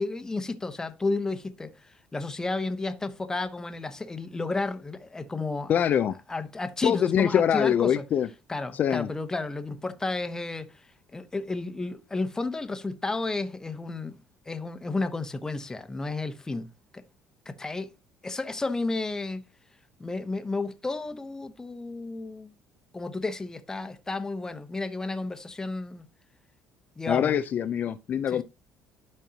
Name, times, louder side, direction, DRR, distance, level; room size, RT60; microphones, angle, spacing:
voice 1, 0.0-5.8 6.3-8.0 8.5-10.7 11.1-14.2 14.5-16.7 16.9-17.0 17.5-17.9 18.2-19.4 20.0-22.5 22.9-26.1 27.0-27.4 28.3-28.4, left 3 dB, 15° left, 1.1 m, -32 dB
voice 2, 5.7-6.2 6.8-8.3 8.7-9.1 27.1-28.4, left 9 dB, 45° left, 0.5 m, -24 dB
12.5 x 4.4 x 2.9 m
cardioid pair, 110°, 4 cm